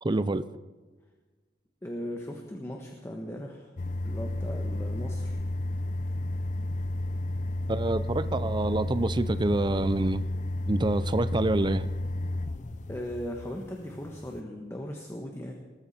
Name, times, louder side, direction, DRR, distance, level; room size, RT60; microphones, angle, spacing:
voice 1, 0.0-0.5 7.7-10.2 10.7-11.9, right 2 dB, 25° right, 13 dB, 0.5 m, -27 dB
voice 2, 1.8-3.7 4.0-5.4 12.9-15.5, equal, 15° left, 1 dB, 1.3 m, -38 dB
sound 1, 3.8-14.4, left 1 dB, 40° left, 0.6 m, -32 dB
20.0 x 14.0 x 4.4 m, 1.4 s
head